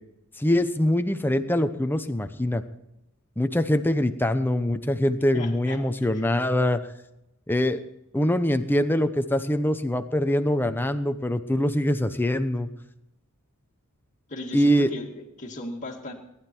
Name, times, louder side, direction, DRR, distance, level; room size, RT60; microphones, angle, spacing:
voice 1, 0.4-2.6 3.4-6.8 7.5-7.8 8.1-12.7 14.5-14.9, left 1 dB, 10° left, 8 dB, 0.8 m, -23 dB
voice 2, 5.3-5.8 6.1-6.3 14.3-16.1, left 1 dB, 35° left, -2 dB, 2.2 m, -37 dB
18.5 x 11.5 x 4.5 m, 0.86 s
head